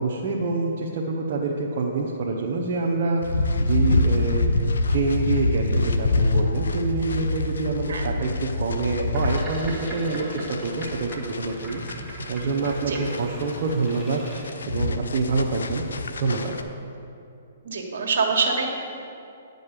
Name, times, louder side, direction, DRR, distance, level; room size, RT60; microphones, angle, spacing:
voice 1, 0.0-4.6 4.9-11.8 12.3-15.8 16.2-16.5, right 3 dB, 50° right, -3 dB, 0.9 m, -26 dB
sound 1, 3.2-16.6, left 2 dB, 85° left, 0.6 m, -26 dB
Boat Water vehicle, 9.0-14.5, right 1 dB, 5° right, 2.2 m, -38 dB
voice 2, 17.6-18.7, right 4 dB, 65° right, 2 dB, 1.6 m, -24 dB
9.9 x 5.3 x 6.6 m, 2.6 s
hypercardioid pair, 145°, 0 cm